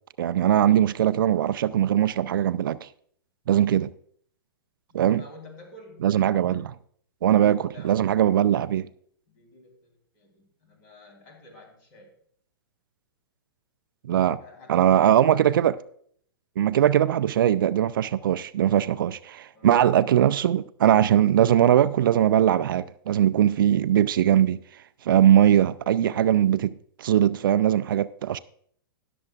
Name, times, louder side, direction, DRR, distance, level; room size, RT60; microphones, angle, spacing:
voice 1, 0.2-2.9 3.5-3.9 4.9-5.2 6.0-6.7 7.2-8.9 14.0-14.4 14.7-15.7 16.6-24.6 25.1-28.4, right 11 dB, 65° right, 0.4 m, -21 dB
voice 2, 4.9-6.1 7.4-8.1 9.3-12.1 14.4-15.1 15.5-15.7 19.5-19.8, left 2 dB, 45° left, 3.4 m, -50 dB
20.0 x 6.9 x 2.4 m
hypercardioid pair, 110°, 12 cm